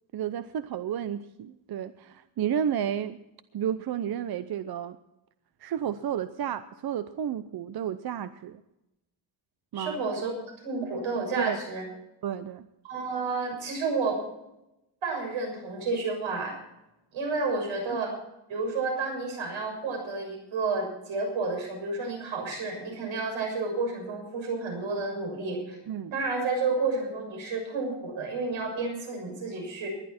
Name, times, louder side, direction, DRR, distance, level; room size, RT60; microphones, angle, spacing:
voice 1, 0.1-3.2 3.5-5.0 5.6-8.6 9.7-10.0 11.4-11.6 12.2-12.6 25.9-26.1, right 9 dB, 55° right, 12 dB, 0.7 m, -31 dB
voice 2, 9.7-10.3 10.6-11.8 12.8-14.2 15.0-16.5 17.1-18.1 18.5-25.8 26.1-29.9, right 3 dB, 90° right, 2 dB, 6.7 m, -30 dB
19.5 x 12.0 x 4.3 m, 0.89 s
wide cardioid pair, 140°, 45 cm